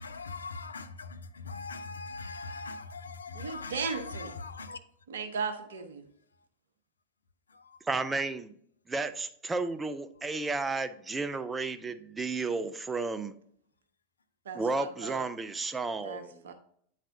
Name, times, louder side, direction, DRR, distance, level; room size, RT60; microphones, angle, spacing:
voice 1, 0.0-4.8 6.3-6.5 7.5-7.8 10.2-10.5, left 4 dB, 75° left, 0.4 m, -41 dB
voice 2, 3.3-4.3 5.1-6.1 14.4-15.3 16.0-16.5, right 5 dB, 65° right, 0.7 m, -36 dB
voice 3, 7.9-8.5 8.9-13.3 14.5-16.5, right 3 dB, 15° right, 0.4 m, -33 dB
8.8 x 4.1 x 2.6 m
figure-of-eight pair, 90°, 0 cm